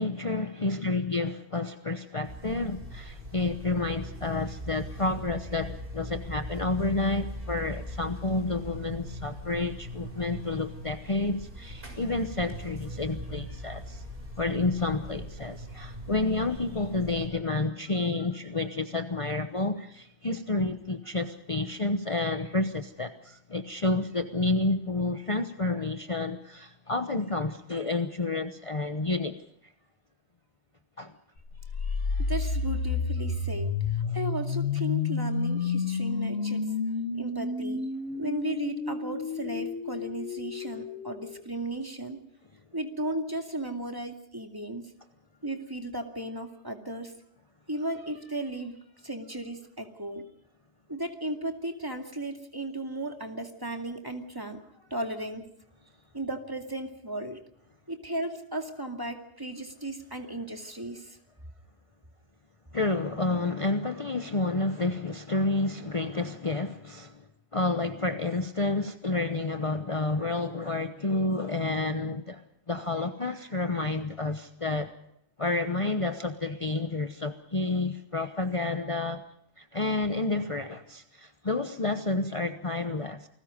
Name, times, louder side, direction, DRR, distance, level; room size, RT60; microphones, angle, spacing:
voice 1, 0.0-14.0 14.4-29.4 31.0-31.1 62.7-67.2 67.5-72.4 72.7-74.9 75.4-79.2 79.6-83.3, left 2 dB, 30° left, 8 dB, 1.0 m, -30 dB
Buzz, 2.2-17.3, equal, 50° right, 6.6 m, -40 dB
sound 1, 31.5-41.4, left 4 dB, 80° left, 1.9 m, -30 dB
voice 2, 31.8-36.6 37.2-37.8 38.1-42.2 42.7-44.9 45.4-47.1 47.7-50.2 50.9-55.4 56.1-57.4 57.9-61.2, right 1 dB, 20° right, 4 dB, 2.5 m, -35 dB
29.0 x 20.0 x 5.2 m, 0.71 s
omnidirectional pair, 1.2 m